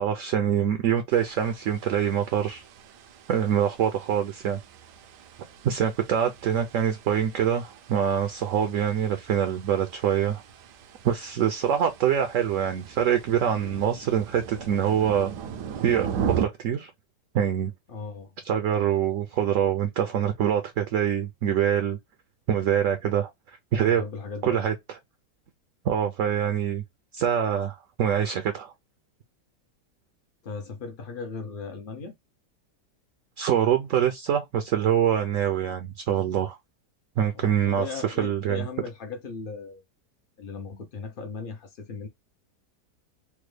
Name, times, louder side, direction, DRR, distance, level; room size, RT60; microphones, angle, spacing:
voice 1, 0.0-2.6 3.3-4.6 5.6-10.4 11.0-15.3 15.8-16.9 17.3-17.7 18.4-22.0 22.5-23.3 23.7-24.0 24.4-24.7 25.8-26.8 27.1-28.7 33.4-36.6 37.2-38.7, right 9 dB, 65° right, 0.8 m, -25 dB
sound 1, 1.1-16.5, right 7 dB, 85° right, 1.2 m, -38 dB
voice 2, 17.9-18.3 23.8-24.7 30.4-32.1 37.3-39.8 40.4-42.1, left 4 dB, 65° left, 0.5 m, -37 dB
3.5 x 2.1 x 3.2 m
omnidirectional pair, 1.8 m